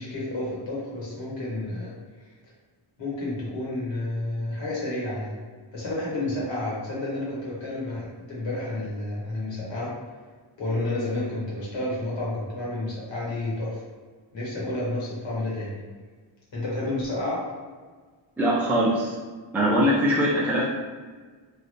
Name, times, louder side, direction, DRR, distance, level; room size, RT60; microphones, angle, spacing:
voice 1, 0.0-1.9 3.0-5.4 5.7-9.9 10.6-13.8 14.3-15.8 16.5-17.4, left 2 dB, 65° left, -6 dB, 1.3 m, -30 dB
voice 2, 18.4-19.1 19.5-20.7, equal, 5° right, -7 dB, 0.5 m, -22 dB
3.2 x 2.5 x 2.6 m, 1.5 s
wide cardioid pair, 145°, 48 cm